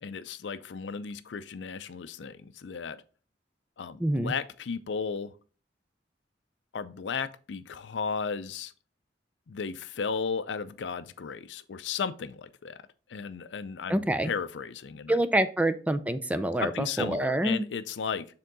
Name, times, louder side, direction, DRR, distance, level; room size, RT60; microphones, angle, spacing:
voice 1, 0.0-3.0 3.8-5.3 6.7-8.7 9.5-12.8 13.1-15.2 16.6-18.3, left 6 dB, 75° left, 0.5 m, -35 dB
voice 2, 4.0-4.3 13.9-14.3 15.1-17.6, right 1 dB, 10° right, 0.4 m, -26 dB
6.8 x 3.7 x 3.9 m
head